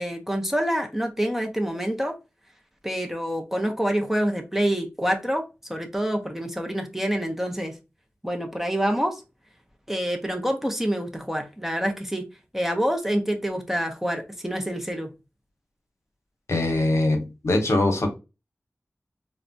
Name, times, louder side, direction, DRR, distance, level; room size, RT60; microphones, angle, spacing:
voice 1, 0.0-2.2 2.8-5.4 5.7-7.7 8.2-9.2 9.9-12.2 12.5-15.1, equal, 5° right, 3 dB, 0.5 m, -26 dB
voice 2, 16.5-18.1, left 2 dB, 70° left, 4 dB, 0.8 m, -22 dB
3.3 x 2.1 x 2.5 m, 0.27 s
wide cardioid pair, 55°, 5 cm